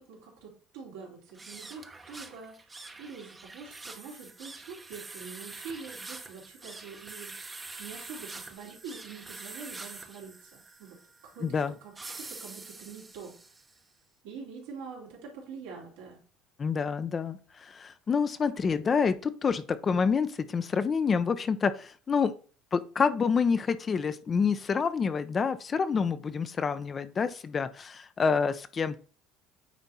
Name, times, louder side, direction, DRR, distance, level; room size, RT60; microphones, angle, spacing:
voice 1, 0.0-7.3 7.8-11.0 11.3-13.5 14.2-16.2, right 5 dB, 85° right, -2 dB, 3.3 m, -45 dB
sound 1, 1.3-13.8, right 3 dB, 20° right, 1.0 m, -45 dB
voice 2, 11.4-11.7 16.6-22.3 22.7-29.0, left 5 dB, 35° left, 12 dB, 0.7 m, -28 dB
9.2 x 3.5 x 4.3 m, 0.38 s
supercardioid pair, 90°, 0 cm